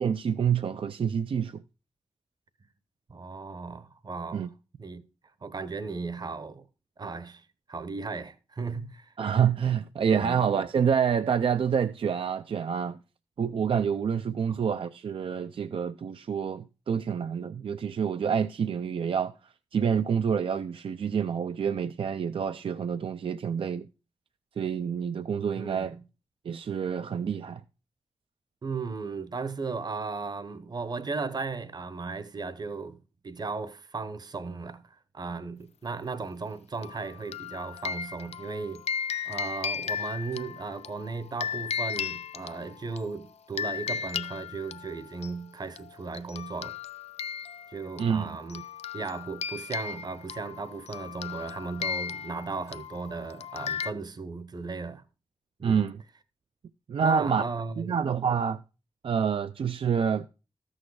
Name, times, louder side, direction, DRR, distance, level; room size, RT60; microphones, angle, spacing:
voice 1, 0.0-1.6 4.3-4.5 9.2-13.0 13.4-19.3 19.7-23.9 24.6-25.9 26.5-27.6 48.0-48.3 55.6-56.0 56.9-57.4 57.8-58.6 59.0-60.3, right 7 dB, 55° right, 0.4 m, -27 dB
voice 2, 3.1-4.5 4.8-5.0 5.4-6.6 7.0-9.1 10.1-10.4 14.5-14.6 25.5-26.0 28.6-33.0 33.2-46.8 47.7-48.6 48.9-55.0 55.6-55.8 57.0-57.9, right 4 dB, 40° right, 0.8 m, -36 dB
sound 1, 36.8-43.0 43.6-45.3 45.8-45.9 46.1-53.9, left 7 dB, 85° left, 0.4 m, -36 dB
13.5 x 6.4 x 4.7 m
wide cardioid pair, 115°, 11 cm